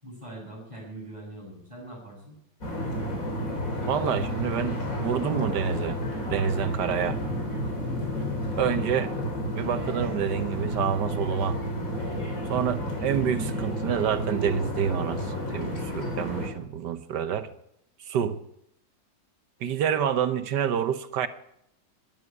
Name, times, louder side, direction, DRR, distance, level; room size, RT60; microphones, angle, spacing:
voice 1, 0.0-2.4, right 1 dB, 15° right, -3 dB, 6.9 m, -42 dB
sound 1, 2.6-16.5, equal, 45° left, 4.2 m, -31 dB
voice 2, 3.9-6.0 6.3-7.2 8.6-9.1 9.5-11.6 12.5-17.5 18.1-18.4 19.6-21.3, right 8 dB, 70° right, 12 dB, 1.5 m, -28 dB
12.5 x 11.0 x 9.7 m, 0.78 s
omnidirectional pair, 2.0 m